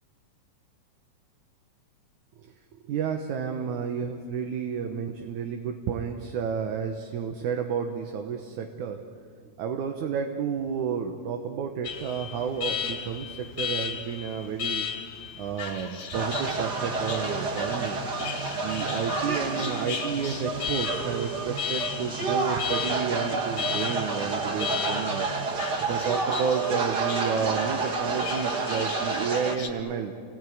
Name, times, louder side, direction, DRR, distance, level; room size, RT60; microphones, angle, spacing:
voice 1, 2.9-9.0 9.6-14.9 15.4-25.3 25.9-30.1, right 7 dB, 75° right, 4 dB, 2.6 m, -31 dB
Alarm, 11.8-29.7, left 7 dB, 55° left, 3.0 m, -36 dB
sound 1, 16.1-29.5, right 4 dB, 40° right, 1.6 m, -30 dB
29.5 x 19.0 x 9.4 m, 2.3 s
omnidirectional pair, 3.7 m